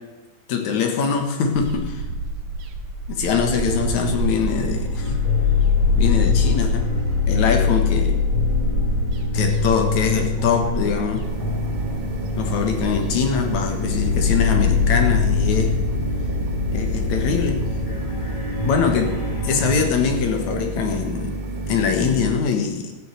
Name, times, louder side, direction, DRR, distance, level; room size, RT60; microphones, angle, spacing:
voice 1, 0.5-2.0 3.1-5.2 6.0-6.8 7.3-8.2 9.3-11.2 12.4-15.7 16.7-17.6 18.6-19.1 19.4-21.3 21.7-22.9, left 6 dB, 70° left, 3 dB, 2.7 m, -23 dB
sound 1, 1.6-13.8, right 2 dB, 60° right, 1.5 m, -28 dB
sound 2, 3.7-19.8, left 5 dB, 90° left, 5.3 m, -23 dB
sound 3, 11.2-22.2, right 2 dB, 75° right, 3.0 m, -30 dB
14.0 x 6.6 x 9.0 m, 1.2 s
omnidirectional pair, 3.7 m